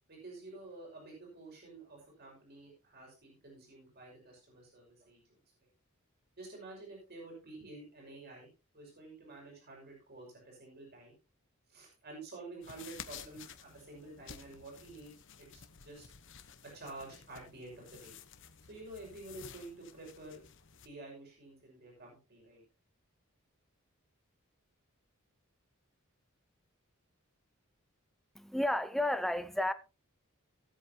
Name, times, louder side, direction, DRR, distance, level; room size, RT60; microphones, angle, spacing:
voice 1, 0.1-5.4 6.4-11.1 11.7-16.1 16.6-18.1 18.7-20.4 20.8-22.6, right 2 dB, 50° right, 5.7 m, -50 dB
sound 1, 12.6-20.9, left 7 dB, 60° left, 1.1 m, -53 dB
voice 2, 28.3-29.7, left 1 dB, ahead, 0.7 m, -32 dB
18.5 x 8.4 x 2.9 m
head